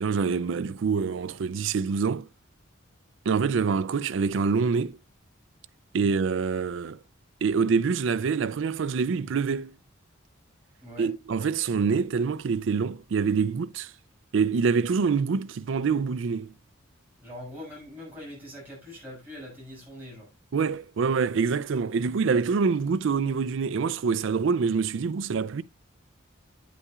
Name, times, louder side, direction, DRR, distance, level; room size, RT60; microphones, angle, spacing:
voice 1, 0.0-2.3 3.3-5.0 5.9-7.0 7.4-9.7 11.0-13.9 14.3-16.5 20.5-25.6, right 5 dB, 65° right, 0.4 m, -25 dB
voice 2, 17.2-20.3, left 1 dB, 10° right, 6.4 m, -42 dB
9.5 x 8.3 x 2.4 m
head